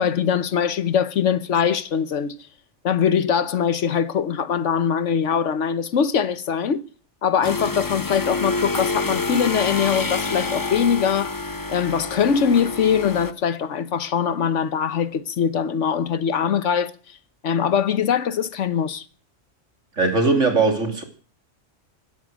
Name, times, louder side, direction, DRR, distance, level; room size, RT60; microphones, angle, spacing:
voice 1, 0.0-2.4 2.8-6.8 7.2-11.4 11.7-17.2 17.4-19.0, left 7 dB, 80° left, 1.4 m, -22 dB
sound 1, 7.4-13.3, left 3 dB, 20° left, 0.6 m, -27 dB
voice 2, 20.0-21.0, right 3 dB, 90° right, 3.4 m, -19 dB
16.5 x 13.0 x 6.3 m
omnidirectional pair, 1.2 m